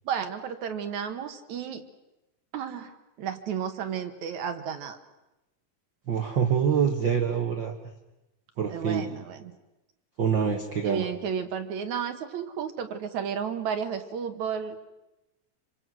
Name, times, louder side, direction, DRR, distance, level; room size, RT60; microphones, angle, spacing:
voice 1, 0.1-1.8 2.5-5.0 8.7-9.5 10.8-14.8, right 7 dB, 65° right, 8 dB, 2.5 m, -32 dB
voice 2, 6.1-7.7 8.6-9.1 10.2-11.1, right 7 dB, 50° right, 5 dB, 1.5 m, -25 dB
27.5 x 25.0 x 6.2 m, 0.98 s
omnidirectional pair, 3.7 m